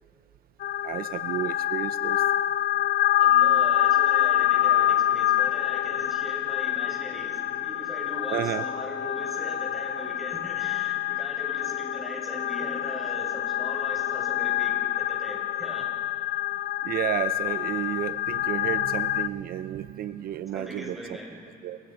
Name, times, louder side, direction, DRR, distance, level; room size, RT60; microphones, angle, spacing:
sound 1, 0.6-19.3, left 12 dB, 60° left, 0.6 m, -26 dB
voice 1, 0.8-2.3 8.3-8.7 16.8-21.2 21.6-21.8, right 12 dB, 60° right, 12 dB, 0.6 m, -32 dB
voice 2, 3.2-15.9 20.5-21.4, equal, ahead, -2 dB, 7.6 m, -39 dB
29.0 x 26.0 x 5.7 m, 2.9 s
cardioid pair, 110°, 17 cm